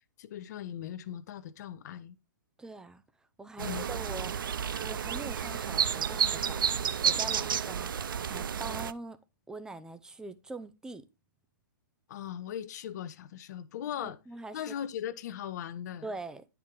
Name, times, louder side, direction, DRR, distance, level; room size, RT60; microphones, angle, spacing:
voice 1, 0.2-2.2 3.6-3.9 12.1-14.2 14.5-16.1, left 10 dB, 55° left, 0.9 m, -39 dB
voice 2, 2.6-3.0 3.4-4.5 4.8-9.2 9.5-11.1 14.0-14.7 16.0-16.4, right 3 dB, 5° right, 0.6 m, -43 dB
sound 1, 3.6-8.9, right 8 dB, 75° right, 0.5 m, -31 dB
10.0 x 4.6 x 3.7 m
hypercardioid pair, 125°, 11 cm